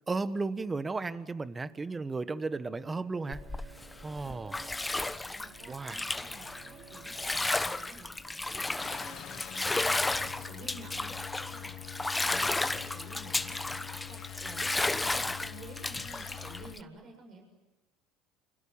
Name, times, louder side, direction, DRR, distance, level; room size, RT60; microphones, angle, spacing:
voice 1, 0.1-3.4 4.0-4.6 5.7-6.0, right 3 dB, 20° right, 13 dB, 1.4 m, -34 dB
Bowed string instrument, 1.1-9.0, right 5 dB, 65° right, 3.6 m, -57 dB
Bathtub (filling or washing), 3.3-16.8, left 2 dB, 10° left, 1.1 m, -33 dB
voice 2, 4.2-4.7 5.3-17.4, right 3 dB, 45° right, 3 dB, 7.3 m, -52 dB
sound 1, 8.8-16.8, left 15 dB, 55° left, 1.1 m, -46 dB
29.0 x 26.0 x 7.2 m, 1.1 s
supercardioid pair, 95°, 0 cm